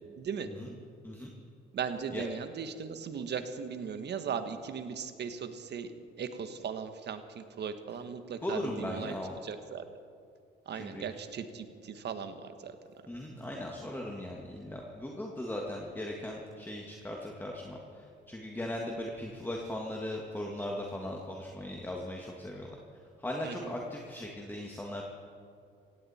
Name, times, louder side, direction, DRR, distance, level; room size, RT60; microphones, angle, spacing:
voice 1, 0.2-0.5 1.7-5.9 6.2-9.1 9.4-9.8 10.7-12.7 23.4-23.7, right 6 dB, 60° right, 9 dB, 1.4 m, -38 dB
voice 2, 8.4-9.4 10.7-11.0 13.1-22.7 23.2-25.0, left 1 dB, 10° left, 0 dB, 1.8 m, -38 dB
17.0 x 16.5 x 4.3 m, 2.5 s
cardioid pair, 90°, 20 cm